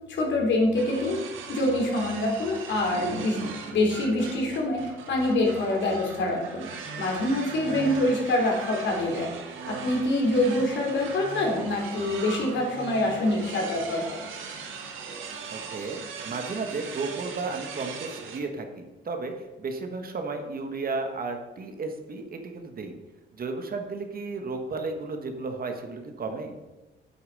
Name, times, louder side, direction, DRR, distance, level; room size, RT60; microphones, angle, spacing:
voice 1, 0.1-1.2 1.5-3.4 3.7-4.8 5.1-6.6 7.0-9.3 9.7-14.2, left 1 dB, 65° left, -1 dB, 3.4 m, -25 dB
sound 1, 0.7-18.4, right 5 dB, 85° right, 1.5 m, -39 dB
voice 2, 15.5-23.0 23.3-26.5, right 3 dB, 50° right, 5 dB, 1.5 m, -34 dB
8.6 x 8.1 x 5.3 m, 1.1 s
cardioid pair, 90°, 20 cm